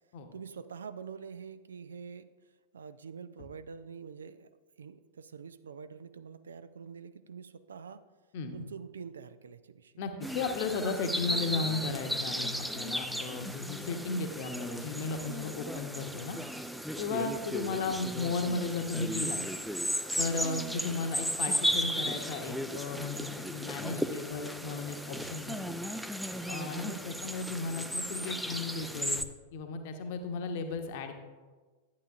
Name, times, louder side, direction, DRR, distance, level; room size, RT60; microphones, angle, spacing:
voice 1, 0.3-2.3 2.7-4.5 4.8-8.0 8.5-9.9 20.4-20.5, right 6 dB, 70° right, 13 dB, 0.4 m, -45 dB
voice 2, 10.0-16.4 17.0-19.4 20.2-25.8 26.5-29.2 29.5-31.2, left 4 dB, 50° left, 6 dB, 1.0 m, -35 dB
sound 1, 10.2-29.2, equal, ahead, 0.4 m, -35 dB
11.5 x 9.1 x 2.5 m, 1.3 s
figure-of-eight pair, 90°, 0 cm